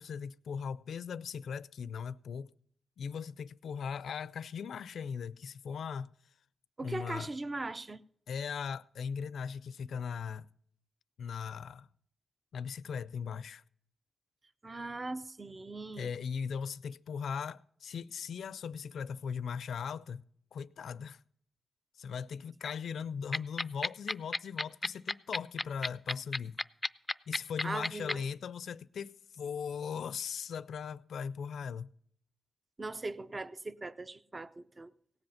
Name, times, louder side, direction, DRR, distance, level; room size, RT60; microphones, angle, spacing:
voice 1, 0.0-2.5 3.0-6.1 6.8-7.3 8.3-10.5 11.2-11.9 12.5-13.6 16.0-20.2 20.5-21.2 22.0-26.6 27.3-31.9, left 6 dB, 80° left, 0.4 m, -39 dB
voice 2, 6.8-8.0 14.6-16.1 27.6-28.2 32.8-34.9, right 2 dB, 30° right, 0.6 m, -40 dB
sound 1, 23.3-28.1, left 2 dB, 15° left, 0.4 m, -31 dB
17.5 x 7.9 x 5.7 m
cardioid pair, 90°, 0 cm